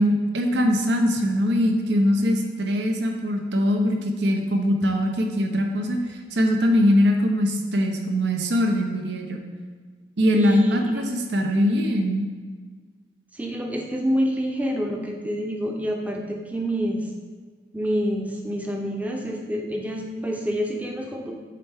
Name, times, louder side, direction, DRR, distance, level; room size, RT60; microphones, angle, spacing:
voice 1, 0.0-6.0 6.3-9.4 10.2-12.3, equal, 80° right, 3 dB, 0.8 m, -22 dB
voice 2, 10.3-11.0 13.3-17.1 17.7-21.3, equal, 10° right, 1 dB, 0.6 m, -27 dB
7.6 x 4.4 x 3.6 m, 1.5 s
head